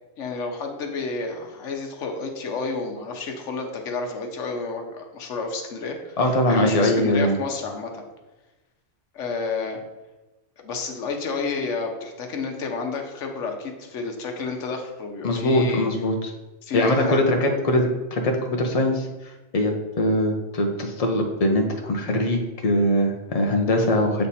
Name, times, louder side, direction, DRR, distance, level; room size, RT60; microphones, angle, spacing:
voice 1, 0.2-6.2 6.5-8.0 9.1-9.8 10.6-15.9 16.6-17.3, left 4 dB, 85° left, 3 dB, 1.2 m, -30 dB
voice 2, 6.2-7.4 15.2-16.3 16.7-24.3, left 1 dB, 35° left, 2 dB, 0.7 m, -22 dB
7.3 x 3.3 x 4.2 m, 1.1 s
omnidirectional pair, 1.2 m